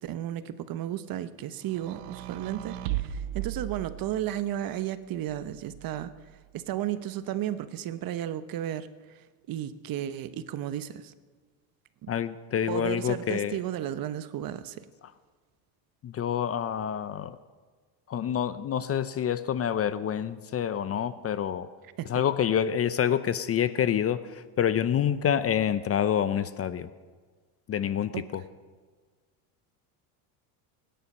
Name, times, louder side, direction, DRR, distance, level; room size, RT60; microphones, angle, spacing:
voice 1, 0.0-6.1 6.5-11.1 12.0-12.1 12.7-14.9 22.0-22.2 28.1-28.3, right 11 dB, 45° right, 1.0 m, -34 dB
sound 1, 1.7-4.4 5.3-6.3, right 13 dB, 90° right, 1.0 m, -36 dB
voice 2, 12.1-13.6 16.0-17.4 18.1-21.7 22.1-26.9 27.7-28.4, left 9 dB, 30° left, 0.6 m, -27 dB
24.5 x 10.5 x 5.5 m
supercardioid pair, 110°, 47 cm